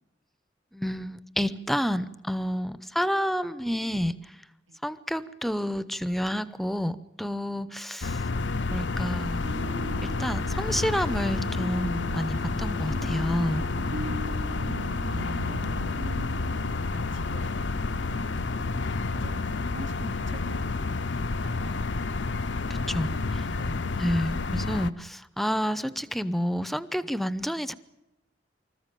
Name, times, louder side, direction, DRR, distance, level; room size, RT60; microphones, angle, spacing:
voice 1, 0.7-4.1 4.8-8.2 8.6-9.5 10.0-13.6 22.9-23.1 24.0-27.7, equal, ahead, 14 dB, 0.7 m, -29 dB
sound 1, 8.0-24.9, left 3 dB, 70° left, 0.7 m, -30 dB
sound 2, 9.4-16.7, right 1 dB, 60° right, 1.2 m, -39 dB
voice 2, 14.0-14.5 14.9-18.4 19.1-20.7 21.4-21.9 23.1-23.9, right 2 dB, 80° right, 7 dB, 1.9 m, -46 dB
25.5 x 14.0 x 9.1 m, 0.95 s
head